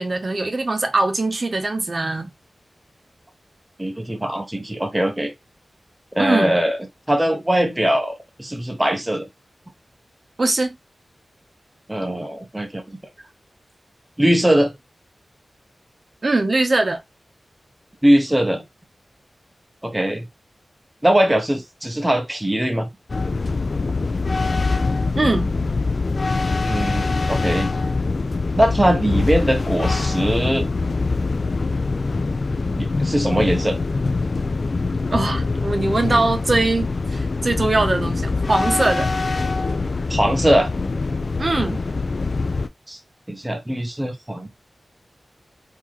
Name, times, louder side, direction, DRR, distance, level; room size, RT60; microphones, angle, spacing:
voice 1, 0.0-2.3 6.2-6.5 10.4-10.7 16.2-17.0 25.2-25.5 35.1-39.1 41.4-41.8, right 2 dB, 40° right, 0.8 m, -21 dB
voice 2, 3.8-5.3 6.2-6.8 7.1-9.2 11.9-13.0 14.2-14.7 18.0-18.6 19.8-20.3 21.0-22.9 26.6-27.7 28.5-30.7 32.7-33.8 40.1-40.7 42.9-43.0 43.3-44.5, right 1 dB, 10° right, 0.6 m, -21 dB
sound 1, 23.1-42.7, left 3 dB, 50° left, 0.3 m, -23 dB
3.7 x 2.6 x 3.0 m
wide cardioid pair, 115°, 0 cm